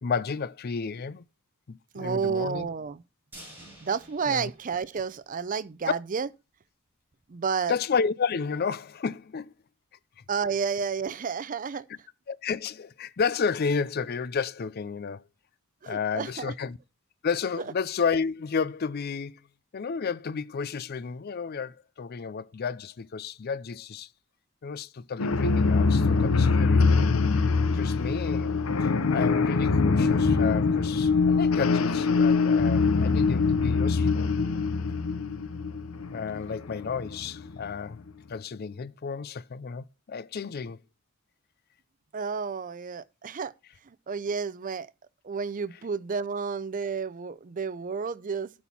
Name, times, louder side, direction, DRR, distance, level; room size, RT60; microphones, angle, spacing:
voice 1, 0.0-1.2 1.7-2.7 4.3-4.5 7.7-9.5 12.3-15.2 15.9-16.8 17.2-19.4 19.7-24.1 24.6-27.1 27.7-28.5 28.8-34.5 36.1-38.0 38.3-40.8, left 5 dB, 50° left, 0.4 m, -32 dB
voice 2, 1.9-3.0 3.8-6.3 7.3-7.7 10.3-11.8 15.8-16.5 17.6-17.7 42.1-43.5 43.8-44.9 45.2-48.5, right 5 dB, 40° right, 0.5 m, -31 dB
sound 1, 3.3-5.5 5.8-5.9 6.2-6.3, right 1 dB, 10° right, 7.3 m, -50 dB
sound 2, 25.2-37.7, left 4 dB, 85° left, 0.7 m, -23 dB
12.5 x 4.4 x 5.5 m
head